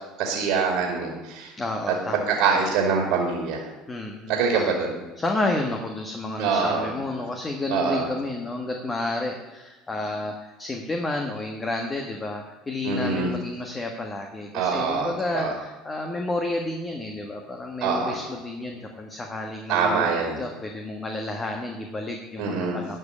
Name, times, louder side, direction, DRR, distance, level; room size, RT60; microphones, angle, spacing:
voice 1, 0.2-1.5 2.3-3.7 4.3-4.9 6.4-6.9 7.7-8.1 12.8-13.3 14.5-15.5 17.8-18.2 19.7-20.4 22.4-22.8, right 5 dB, 70° right, 1 dB, 2.4 m, -24 dB
voice 2, 1.6-2.4 3.9-4.9 5.2-20.1 20.4-23.0, left 2 dB, 20° left, 2 dB, 1.5 m, -31 dB
11.5 x 5.4 x 8.6 m, 1.1 s
supercardioid pair, 100°, 0 cm